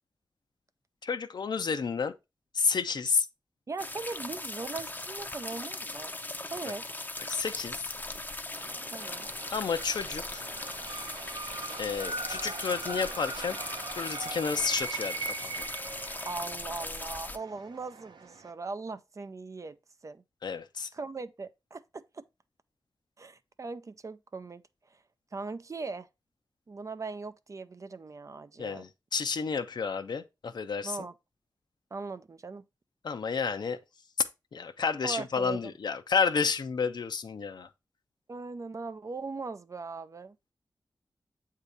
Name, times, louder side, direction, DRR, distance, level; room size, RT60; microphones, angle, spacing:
voice 1, 1.0-2.1 2.5-3.3 7.3-7.8 9.5-10.4 11.8-13.6 13.9-15.7 20.4-20.9 28.6-31.0 33.0-33.8 34.5-37.7, left 5 dB, 70° left, 0.6 m, -31 dB
voice 2, 3.7-6.1 6.5-6.9 8.9-9.3 16.3-19.8 20.0-20.2 20.9-22.2 23.2-24.6 24.9-25.0 25.3-26.1 26.7-28.9 30.8-31.1 31.9-32.6 35.0-35.6 38.3-40.5, right 3 dB, 45° right, 0.5 m, -39 dB
sound 1, 3.8-17.4, left 2 dB, 25° left, 0.6 m, -39 dB
sound 2, 8.5-18.5, right 4 dB, 85° right, 0.7 m, -41 dB
8.0 x 2.8 x 4.8 m
wide cardioid pair, 80°, 8 cm